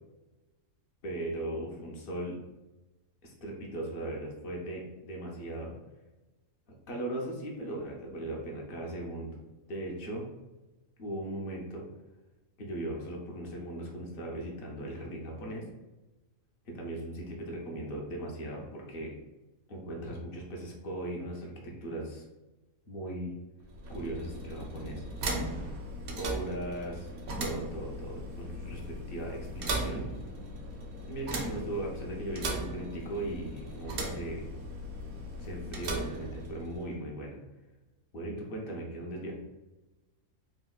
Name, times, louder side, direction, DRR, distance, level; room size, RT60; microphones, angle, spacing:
voice 1, 1.0-2.4 3.2-5.7 6.9-9.4 9.7-10.2 11.0-11.8 12.6-15.6 16.7-19.2 19.7-22.3 22.9-23.3 23.9-25.0 26.2-27.1 27.4-30.1 31.1-34.5 35.4-37.4 38.1-39.3, right 1 dB, 55° left, -1 dB, 0.6 m, -38 dB
sound 1, 23.6-36.9, right 1 dB, 65° right, 0.7 m, -38 dB
3.7 x 2.1 x 2.2 m, 1.1 s
omnidirectional pair, 1.4 m